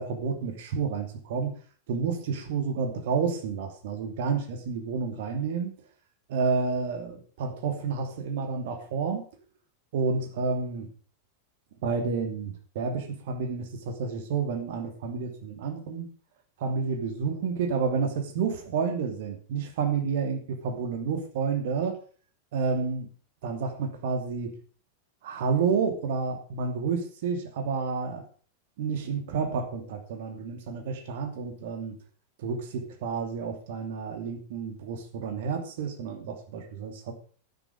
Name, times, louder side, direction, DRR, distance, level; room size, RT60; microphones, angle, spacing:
voice 1, 0.0-1.6 1.9-5.7 6.3-9.2 9.9-10.9 11.8-16.1 16.6-22.0 22.5-23.1 23.4-24.5 25.2-28.3 28.8-32.0 32.4-37.1, right 5 dB, 55° right, 6 dB, 2.8 m, -30 dB
11.5 x 11.0 x 4.9 m, 0.41 s
figure-of-eight pair, 90°, 0 cm